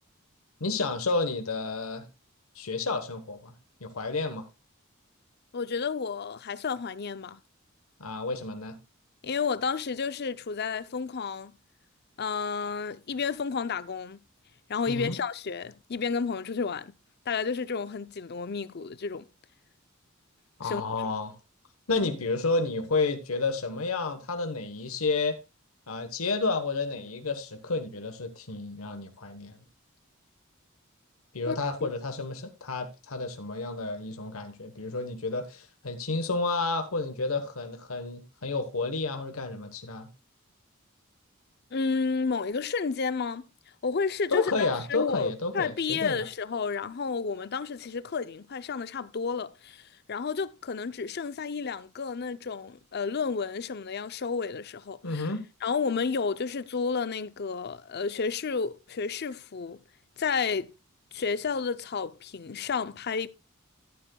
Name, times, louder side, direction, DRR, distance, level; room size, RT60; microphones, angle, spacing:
voice 1, 0.6-2.1 2.5-3.5 3.8-4.5 8.0-8.8 14.9-15.2 20.6-21.4 21.9-25.4 25.9-29.6 31.3-40.1 44.3-46.2 55.0-55.4, left 3 dB, 90° left, 1.2 m, -30 dB
voice 2, 5.5-7.4 9.2-11.6 12.2-14.2 14.7-16.9 17.3-19.3 20.6-20.8 31.5-31.9 41.7-43.5 43.8-55.3 55.6-59.8 60.2-60.7 61.1-63.3, left 5 dB, 50° left, 0.6 m, -31 dB
14.0 x 9.6 x 2.3 m
head